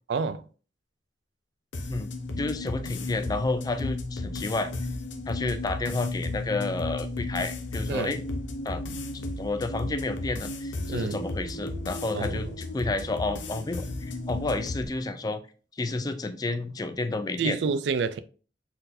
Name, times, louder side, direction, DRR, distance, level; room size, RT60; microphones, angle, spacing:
voice 1, 0.1-0.5 7.9-8.1 10.9-11.2 12.1-12.5 17.4-18.2, right 5 dB, 65° right, 0.3 m, -28 dB
sound 1, 1.7-14.9, left 2 dB, 80° left, 0.7 m, -34 dB
voice 2, 2.4-4.7 5.3-8.2 8.6-8.8 9.1-15.4 15.8-17.6, left 3 dB, 20° left, 0.3 m, -31 dB
4.3 x 4.0 x 2.6 m
head